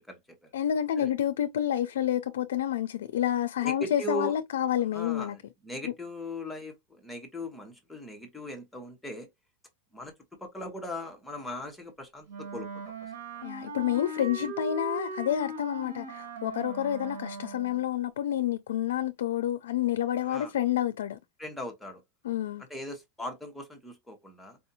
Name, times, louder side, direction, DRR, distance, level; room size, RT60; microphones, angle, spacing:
voice 1, 0.0-0.5 1.0-1.1 3.6-4.3 4.9-9.3 9.9-12.9 14.4-14.5 20.2-20.5 21.4-22.0 22.7-24.6, left 1 dB, 5° left, 1.0 m, -39 dB
voice 2, 0.5-5.4 5.8-5.9 13.4-21.2 22.2-22.6, left 11 dB, 85° left, 0.4 m, -29 dB
Wind instrument woodwind instrument, 12.3-17.8, right 3 dB, 80° right, 1.3 m, -39 dB
4.5 x 2.6 x 2.7 m
supercardioid pair, 145°, 0 cm